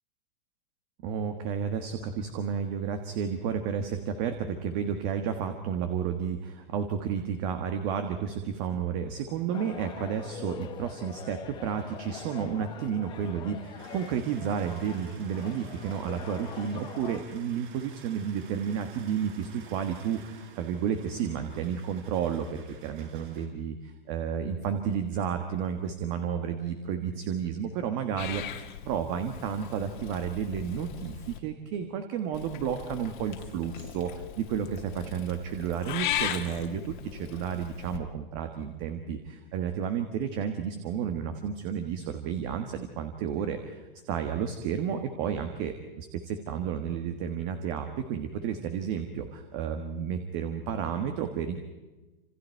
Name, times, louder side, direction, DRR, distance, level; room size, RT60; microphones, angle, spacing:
voice 1, 1.0-51.6, right 8 dB, 30° right, 7 dB, 1.6 m, -32 dB
sound 1, 9.5-17.2, left 9 dB, 15° left, 1.0 m, -44 dB
sound 2, 13.8-23.5, right 6 dB, 60° right, 5.6 m, -51 dB
Purr / Meow, 28.2-31.4 32.3-38.0, left 11 dB, 55° left, 2.3 m, -38 dB
28.5 x 27.5 x 4.6 m, 1.1 s
supercardioid pair, 165°, 29 cm